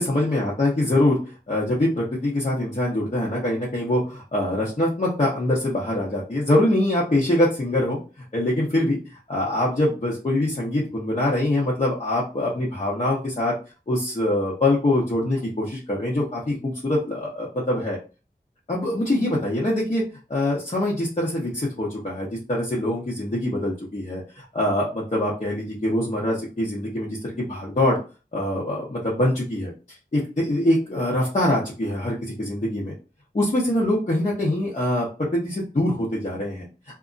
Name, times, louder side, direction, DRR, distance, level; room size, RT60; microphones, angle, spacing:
voice 1, 0.0-8.0 8.3-9.0 9.3-13.5 13.9-18.0 18.7-20.0 20.3-28.0 28.3-29.7 30.1-32.9 33.3-36.7, left 1 dB, 40° left, -6 dB, 0.9 m, -24 dB
2.7 x 2.6 x 2.4 m, 0.33 s
wide cardioid pair, 50°, 18 cm